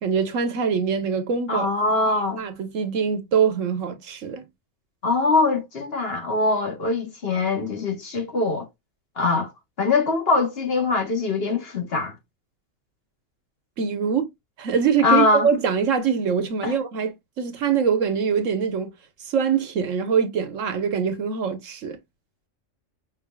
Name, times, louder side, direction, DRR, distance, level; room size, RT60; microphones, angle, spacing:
voice 1, 0.0-1.7 2.4-4.4 13.8-14.3 14.6-18.9 19.2-22.0, right 6 dB, 85° right, 1.3 m, -23 dB
voice 2, 1.5-2.4 5.0-8.7 9.2-9.5 9.8-12.1 15.0-15.5 16.6-16.7, left 3 dB, 50° left, 1.6 m, -22 dB
5.5 x 3.4 x 2.2 m
omnidirectional pair, 1.3 m